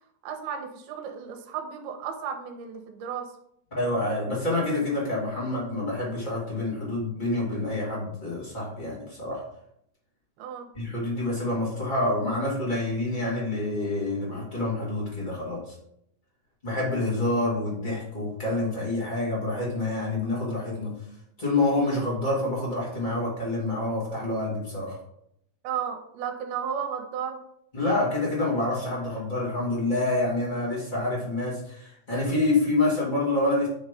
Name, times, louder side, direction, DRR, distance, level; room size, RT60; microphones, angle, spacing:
voice 1, 0.2-3.3 10.4-10.7 25.6-27.4, right 7 dB, 80° right, 5 dB, 2.7 m, -33 dB
voice 2, 3.7-9.4 10.7-15.7 16.6-20.9 21.4-25.0 27.7-33.7, left 2 dB, 25° left, -6 dB, 1.0 m, -27 dB
8.9 x 3.1 x 5.2 m, 0.75 s
omnidirectional pair, 4.7 m